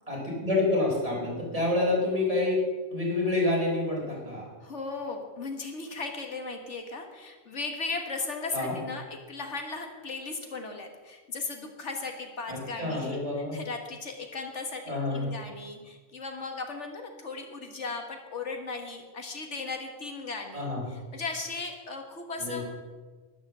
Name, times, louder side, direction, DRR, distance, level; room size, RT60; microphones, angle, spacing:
voice 1, 0.1-2.6 2.9-4.5 8.5-8.7 12.5-13.6 14.9-15.3 20.5-20.8 22.4-22.6, left 2 dB, 25° right, -4 dB, 5.3 m, -28 dB
voice 2, 4.6-13.2 13.5-22.6, left 3 dB, 65° left, 4 dB, 1.7 m, -37 dB
12.5 x 11.0 x 7.3 m, 1.3 s
omnidirectional pair, 1.3 m